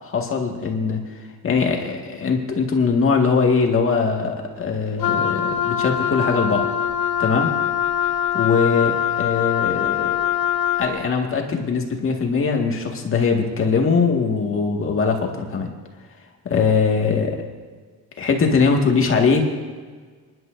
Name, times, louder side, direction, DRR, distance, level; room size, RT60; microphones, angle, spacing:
voice 1, 0.0-1.0 1.4-6.7 7.2-7.5 8.3-10.2 10.8-15.7 16.5-17.4 18.2-19.5, left 5 dB, 35° left, 1 dB, 1.9 m, -21 dB
Wind instrument woodwind instrument, 5.0-11.0, left 9 dB, 65° left, 1.3 m, -23 dB
27.0 x 11.0 x 2.6 m, 1.5 s
cardioid pair, 140°, 36 cm